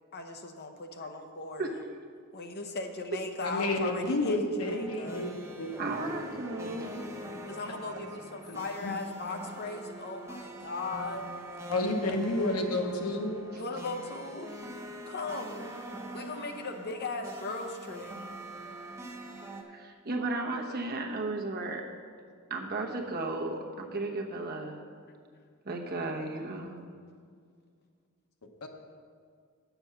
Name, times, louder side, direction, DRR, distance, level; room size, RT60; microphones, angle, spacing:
voice 1, 0.1-1.8 2.3-5.3 7.5-11.3 13.5-14.5 15.1-15.7 16.1-18.2, left 3 dB, 45° left, 5 dB, 0.8 m, -38 dB
voice 2, 3.4-5.7 7.2-7.4 8.5-8.9 11.7-13.3 28.6-28.7, left 2 dB, 80° left, 3 dB, 1.0 m, -30 dB
sound 1, 4.6-19.6, right 1 dB, 15° right, 0.8 m, -44 dB
voice 3, 5.8-7.0 19.7-21.8 22.5-24.8 25.6-26.8, right 2 dB, 45° right, 1 dB, 1.0 m, -34 dB
8.7 x 6.9 x 5.8 m, 2.1 s
head